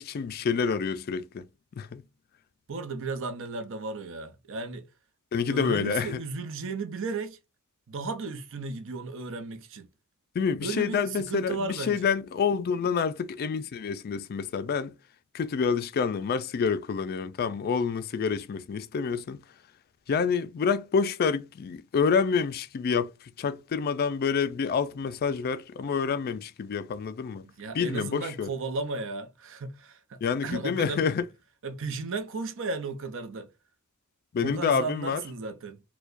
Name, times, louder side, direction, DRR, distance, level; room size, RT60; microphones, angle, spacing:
voice 1, 0.0-1.5 1.7-2.0 5.3-6.2 10.3-14.9 15.3-19.4 20.1-23.1 23.4-27.4 27.7-28.5 30.2-31.3 34.3-35.2, left 6 dB, 45° left, 0.3 m, -28 dB
voice 2, 2.7-4.8 5.5-7.4 7.9-9.9 10.6-12.2 27.4-31.0 31.6-33.5 34.4-35.8, right 3 dB, 65° right, 0.6 m, -35 dB
4.5 x 2.2 x 2.5 m
head